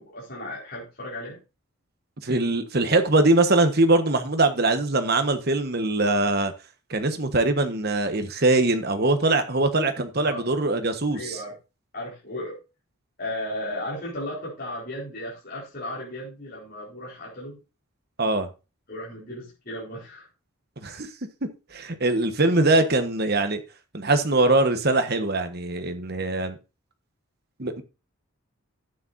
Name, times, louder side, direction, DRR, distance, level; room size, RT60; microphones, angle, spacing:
voice 1, 0.0-1.4 10.1-10.4 11.1-11.5 11.9-12.6 13.2-17.6 18.9-20.3, left 1 dB, 45° left, -6 dB, 4.6 m, -35 dB
voice 2, 2.2-6.5 6.9-11.4 18.2-18.5 20.8-21.1 21.7-23.6 23.9-26.6 27.6-27.8, right 2 dB, 45° right, 8 dB, 1.3 m, -22 dB
11.5 x 8.9 x 2.7 m, 0.29 s
head